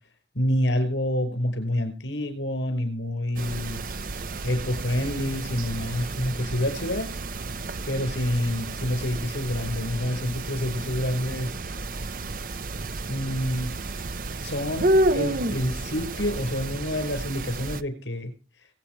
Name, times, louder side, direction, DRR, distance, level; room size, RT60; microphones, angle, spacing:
voice 1, 0.3-3.8 4.4-7.1 7.9-11.6 13.1-13.8 14.4-18.3 18.6-18.7, left 1 dB, 85° left, 8 dB, 5.5 m, -28 dB
sound 1, 3.4-17.8, right 2 dB, 50° right, 0.7 m, -30 dB
24.0 x 8.4 x 4.7 m, 0.35 s
head